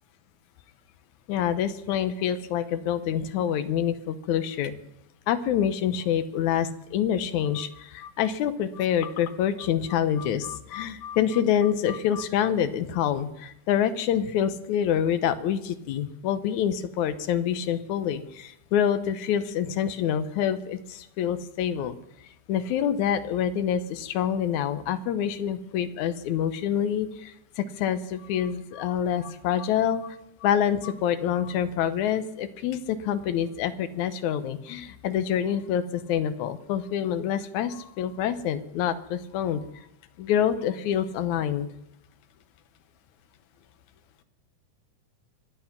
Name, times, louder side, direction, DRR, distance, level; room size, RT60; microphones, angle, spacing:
voice 1, 1.3-4.7 5.3-21.9 22.5-27.3 27.6-30.2 30.4-39.6 40.2-41.7, left 9 dB, 75° left, 11 dB, 2.2 m, -26 dB
25.0 x 8.4 x 5.8 m, 0.80 s
omnidirectional pair, 3.6 m